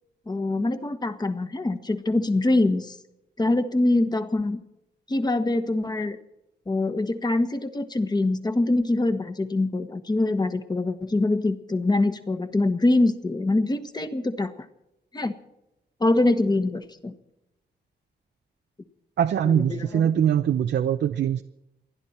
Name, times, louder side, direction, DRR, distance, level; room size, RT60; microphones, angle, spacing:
voice 1, 0.3-3.0 3.4-4.6 5.1-6.2 6.7-14.5 15.1-15.3 16.0-17.1 19.4-19.9, left 2 dB, 25° left, 10 dB, 1.4 m, -24 dB
voice 2, 19.2-21.4, right 9 dB, 80° right, 9 dB, 0.7 m, -22 dB
28.5 x 11.0 x 4.4 m, 0.88 s
wide cardioid pair, 110°, 18 cm